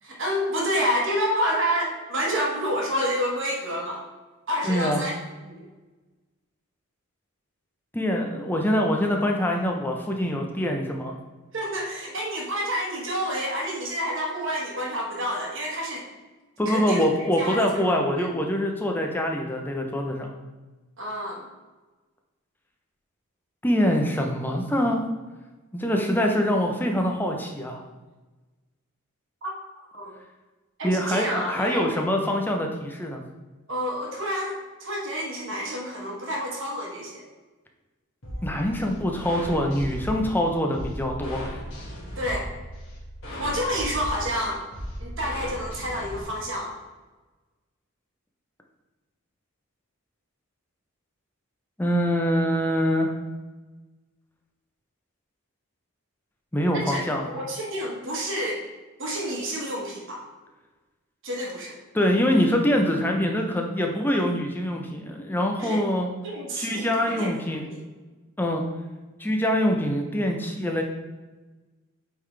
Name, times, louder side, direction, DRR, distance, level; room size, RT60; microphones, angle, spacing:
voice 1, 0.0-4.0 4.5-5.1 5.4-5.7 11.5-16.1 16.6-17.0 17.4-18.3 21.0-21.5 29.4-29.5 29.9-30.1 30.8-31.9 33.7-37.2 42.2-42.5 43.3-44.6 45.0-46.7 56.7-58.6 59.0-60.2 61.2-61.8 65.6-65.8 66.2-67.8, equal, 55° right, -2 dB, 1.3 m, -29 dB
voice 2, 4.6-5.0 7.9-11.2 16.6-20.3 23.6-25.0 25.7-27.8 30.8-33.2 38.4-41.5 51.8-53.1 56.5-57.2 61.9-66.1 66.6-67.6 68.4-68.6 69.2-70.8, equal, 10° left, 1 dB, 0.6 m, -24 dB
sound 1, 38.2-46.2, equal, 55° left, 1.9 m, -36 dB
8.1 x 3.9 x 3.3 m, 1.2 s
head